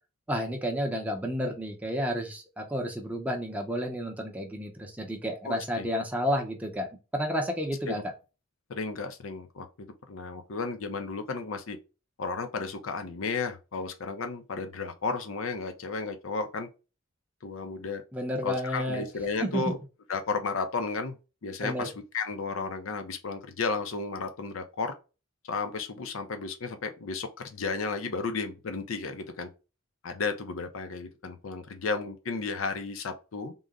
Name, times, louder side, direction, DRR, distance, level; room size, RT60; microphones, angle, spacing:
voice 1, 0.3-8.0 18.1-19.0 19.4-19.7 21.6-21.9, equal, 5° right, 0.6 m, -31 dB
voice 2, 5.4-5.9 7.9-8.0 8.7-11.8 12.2-16.7 17.4-18.0 18.4-19.8 20.1-21.2 21.4-24.9 25.4-29.5 30.0-33.5, left 4 dB, 70° left, 0.6 m, -33 dB
3.8 x 2.1 x 3.6 m
head